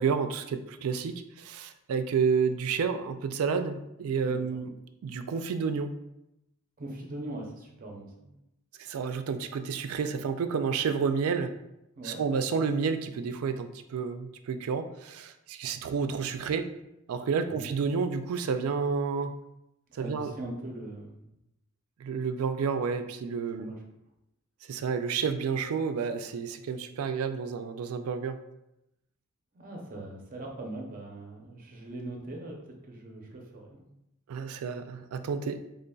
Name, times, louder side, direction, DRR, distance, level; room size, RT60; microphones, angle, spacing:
voice 1, 0.0-4.7 5.0-5.9 8.8-11.5 12.0-16.7 17.1-19.3 19.9-20.3 22.0-23.7 24.7-28.4 34.3-35.6, right 5 dB, 80° right, 9 dB, 0.3 m, -30 dB
voice 2, 6.8-8.3 11.9-12.2 17.4-17.7 19.9-21.2 23.6-23.8 29.5-33.9, right 1 dB, 40° right, 0 dB, 0.6 m, -41 dB
3.9 x 3.6 x 2.3 m, 0.86 s
head